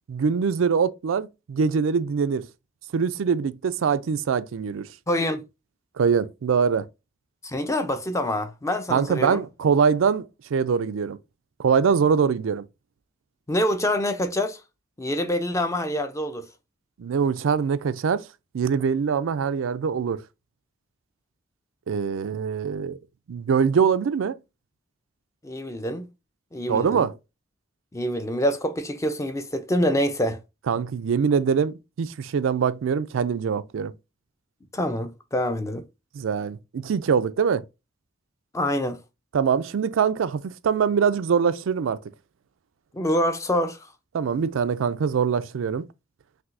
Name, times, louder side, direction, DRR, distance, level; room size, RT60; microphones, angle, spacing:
voice 1, 0.1-2.5 2.9-4.9 6.0-6.9 8.9-11.2 11.6-12.6 17.0-18.2 18.5-20.2 21.9-23.0 23.3-24.4 26.7-27.1 30.7-33.9 36.1-37.6 39.3-42.0 44.1-45.9, right 6 dB, 90° right, 0.4 m, -23 dB
voice 2, 5.1-5.4 7.4-9.4 13.5-14.6 15.0-16.5 25.4-26.1 26.5-27.1 27.9-30.4 34.7-35.8 38.5-39.0 42.9-43.8, left 1 dB, 15° left, 0.5 m, -26 dB
5.9 x 2.7 x 2.5 m
head